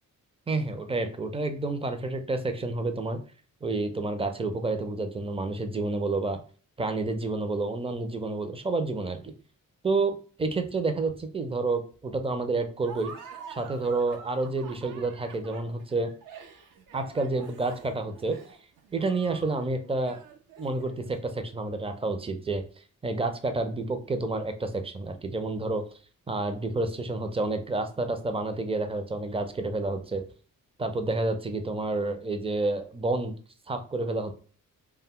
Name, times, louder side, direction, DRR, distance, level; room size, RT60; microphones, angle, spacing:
voice 1, 0.5-3.2 3.6-6.4 6.8-9.3 9.8-13.1 13.5-16.1 16.9-18.4 18.9-20.2 20.6-22.6 23.0-25.8 26.3-30.2 30.8-33.4 33.7-34.3, right 3 dB, 15° right, 7 dB, 0.5 m, -29 dB
Laughter, 12.8-21.1, right 5 dB, 70° right, 0.6 m, -47 dB
2.2 x 2.0 x 3.6 m, 0.40 s
cardioid pair, 65°, 34 cm